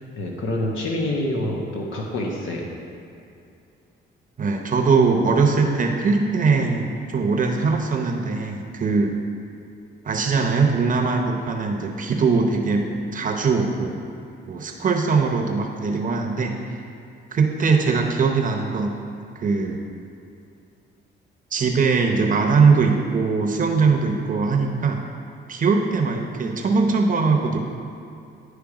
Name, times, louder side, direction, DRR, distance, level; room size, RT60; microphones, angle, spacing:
voice 1, 0.2-2.7, left 1 dB, 75° left, -1 dB, 1.0 m, -26 dB
voice 2, 4.4-9.1 10.0-14.0 14.5-16.5 17.3-18.9 19.4-19.8 21.5-25.0 25.5-27.6, right 4 dB, 40° right, 2 dB, 0.8 m, -21 dB
9.9 x 3.3 x 4.9 m, 2.6 s
cardioid pair, 90°, 20 cm